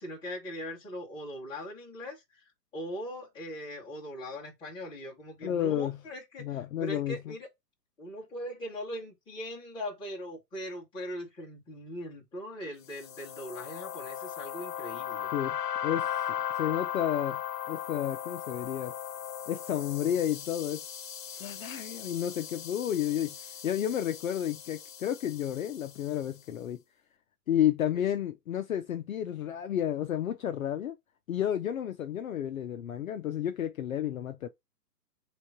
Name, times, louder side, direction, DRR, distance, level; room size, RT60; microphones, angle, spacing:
voice 1, 0.0-7.5 8.0-15.3 27.9-28.0, equal, 10° left, 1.6 m, -40 dB
voice 2, 5.4-6.0 6.4-7.3 15.3-16.1 16.6-17.4 17.7-18.9 19.5-20.8 21.3-26.8 27.5-30.9 31.3-34.5, left 10 dB, 55° left, 0.6 m, -31 dB
sound 1, 12.9-26.3, left 10 dB, 75° left, 1.0 m, -38 dB
3.7 x 3.2 x 4.3 m
hypercardioid pair, 160°, 49 cm